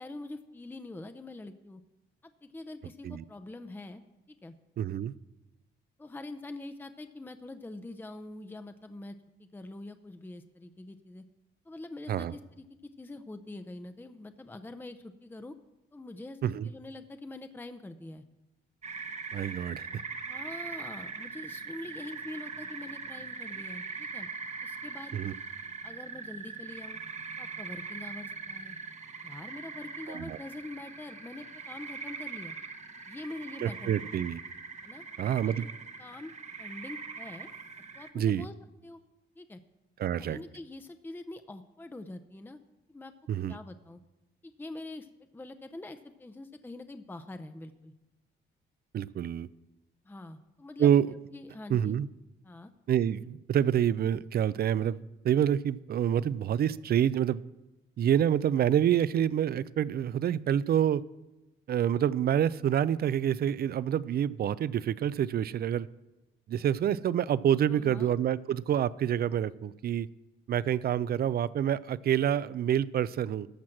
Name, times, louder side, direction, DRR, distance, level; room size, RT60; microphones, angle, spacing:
voice 1, 0.0-1.8 2.2-4.0 4.3-4.5 6.0-11.2 11.6-15.6 15.9-18.2 20.3-24.3 24.6-25.2 25.8-27.0 27.4-28.8 29.2-32.6 33.1-34.1 34.8-35.0 35.4-35.7 36.0-36.3 36.6-37.5 37.9-38.5 38.8-39.0 39.4-39.6 40.2-42.6 42.9-43.1 43.5-44.0 44.4-47.9 50.0-52.0 52.4-52.7 67.7-68.1, left 2 dB, 10° left, 9 dB, 0.6 m, -44 dB
voice 2, 4.8-5.1 12.1-12.3 16.4-16.7 19.3-20.0 25.1-25.3 30.1-30.4 33.6-34.4 35.2-35.7 38.1-38.4 40.0-40.4 43.3-43.6 48.9-49.5 50.8-51.1 51.7-52.1 52.9-55.0 55.2-57.4 58.0-61.0 61.7-65.9 66.5-70.1 70.5-73.5, right 10 dB, 50° right, 19 dB, 0.4 m, -27 dB
sound 1, 18.8-38.1, right 5 dB, 35° right, 1.0 m, -41 dB
14.0 x 6.2 x 6.0 m, 1.0 s
cardioid pair, 90°, 20 cm